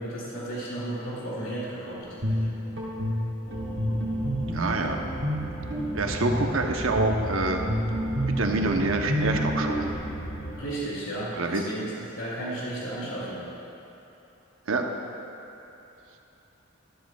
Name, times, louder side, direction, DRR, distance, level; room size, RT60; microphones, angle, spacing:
voice 1, 0.0-2.5 10.5-13.5, right 1 dB, 80° left, -7 dB, 2.4 m, -34 dB
Guitar, 2.0-9.9, equal, 60° right, 2.0 m, -29 dB
sound 1, 3.5-10.6, right 1 dB, 40° left, 1.5 m, -36 dB
voice 2, 4.5-5.0 5.9-7.6 8.4-9.9 11.3-11.6 14.7-14.8, right 2 dB, 90° right, 3 dB, 0.9 m, -26 dB
13.0 x 12.5 x 2.3 m, 3.0 s
head